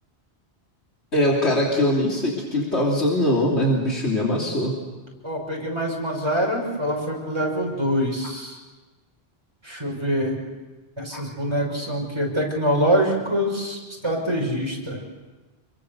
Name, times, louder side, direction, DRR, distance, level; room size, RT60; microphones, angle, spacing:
voice 1, 1.1-4.8 11.1-11.2, left 1 dB, 80° left, -2 dB, 3.5 m, -22 dB
voice 2, 5.2-8.6 9.6-10.4 11.0-15.0, equal, 25° right, -1 dB, 6.3 m, -25 dB
27.5 x 23.0 x 6.9 m, 1.2 s
omnidirectional pair, 1.1 m